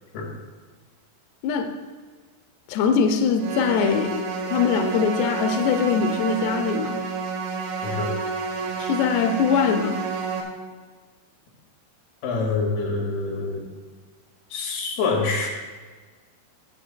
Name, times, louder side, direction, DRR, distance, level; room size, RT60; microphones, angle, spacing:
voice 1, 2.7-4.2 4.5-7.0 8.8-10.0, left 6 dB, 90° left, 5 dB, 2.4 m, -22 dB
sound 1, 3.4-10.4, right 5 dB, 75° right, 3.2 m, -29 dB
voice 2, 12.2-13.6 14.5-15.5, left 4 dB, 60° left, -2 dB, 3.4 m, -26 dB
19.5 x 7.6 x 2.2 m, 1.4 s
omnidirectional pair, 5.7 m